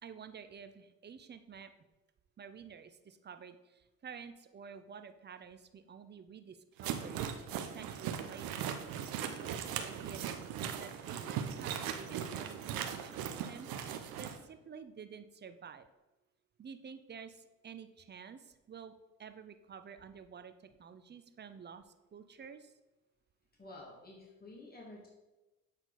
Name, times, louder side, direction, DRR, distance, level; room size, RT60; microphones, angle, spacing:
voice 1, 0.0-1.7 2.4-8.7 9.2-10.4 10.8-15.9 16.6-18.9 19.2-22.7, right 6 dB, 25° right, 9 dB, 0.6 m, -51 dB
sound 1, 6.8-14.4, right 8 dB, 60° right, 0.8 m, -39 dB
voice 2, 23.6-25.1, left 2 dB, 20° left, -3 dB, 2.2 m, -51 dB
7.9 x 4.4 x 4.1 m, 1.1 s
hypercardioid pair, 55°, 41 cm